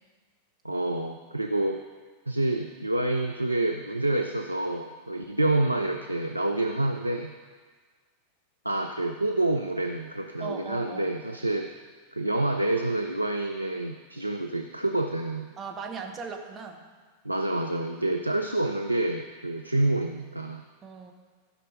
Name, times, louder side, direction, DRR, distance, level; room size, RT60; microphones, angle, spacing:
voice 1, 0.6-1.8 2.3-7.3 8.6-11.7 12.1-15.5 17.2-20.6, right 2 dB, 85° right, 5 dB, 0.5 m, -28 dB
voice 2, 10.4-11.1 15.6-16.8 18.1-18.2 20.8-21.1, right 5 dB, 25° right, 2 dB, 1.5 m, -38 dB
15.5 x 5.4 x 5.4 m, 1.5 s
figure-of-eight pair, 90°, 0 cm